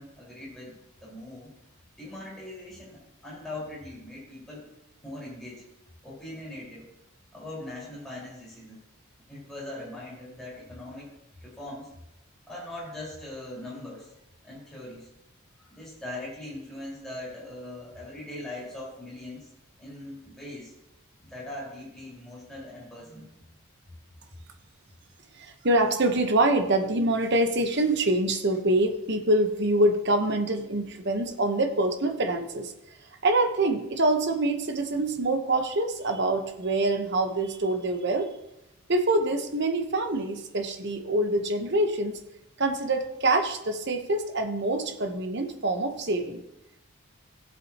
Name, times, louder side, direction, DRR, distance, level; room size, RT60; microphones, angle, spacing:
voice 1, 0.0-1.5 2.0-4.7 5.0-5.6 6.0-6.9 7.3-8.8 9.3-11.1 11.4-11.9 12.5-14.1 14.4-15.1 15.6-19.5 19.8-20.7 21.2-23.6, left 1 dB, ahead, -8 dB, 4.6 m, -41 dB
voice 2, 25.4-32.7 33.2-38.3 38.9-42.2 42.6-46.4, right 2 dB, 50° right, 5 dB, 1.0 m, -25 dB
16.5 x 7.5 x 2.9 m, 0.86 s
head